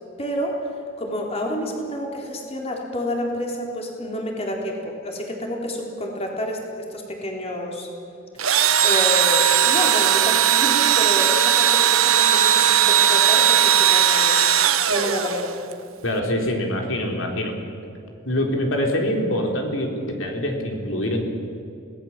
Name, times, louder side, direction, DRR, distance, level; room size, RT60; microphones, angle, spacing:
voice 1, 0.2-0.7 1.0-7.9 8.8-14.4 14.9-15.5, left 1 dB, 30° left, 0 dB, 3.8 m, -29 dB
Engine / Drill, 8.4-15.7, right 9 dB, 85° right, 1.3 m, -18 dB
voice 2, 16.0-17.5 18.2-21.2, left 1 dB, 70° left, 2 dB, 4.0 m, -24 dB
26.0 x 18.5 x 7.5 m, 2.7 s
head